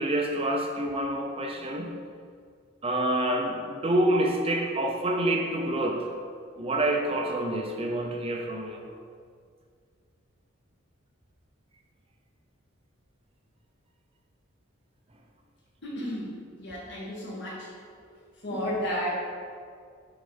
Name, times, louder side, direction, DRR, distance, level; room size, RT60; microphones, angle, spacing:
voice 1, 0.0-1.9 2.8-6.1 6.6-8.8, right 1 dB, 30° right, 2 dB, 0.6 m, -27 dB
voice 2, 15.8-17.7 18.4-19.1, equal, 55° left, -5 dB, 1.9 m, -33 dB
7.5 x 4.0 x 5.3 m, 2.1 s
head